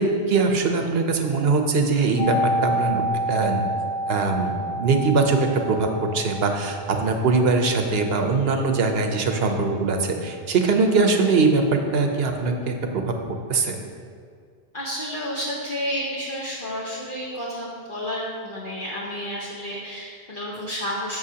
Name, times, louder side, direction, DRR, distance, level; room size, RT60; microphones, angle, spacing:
voice 1, 0.0-3.0 3.3-3.6 4.1-13.8, right 4 dB, 65° right, 4 dB, 1.0 m, -22 dB
sound 1, 2.2-11.9 12.2-12.3, equal, 80° left, 2.6 m, -30 dB
voice 2, 14.7-21.2, equal, 50° left, -7 dB, 1.3 m, -31 dB
11.0 x 7.3 x 2.8 m, 2.2 s
omnidirectional pair, 1.1 m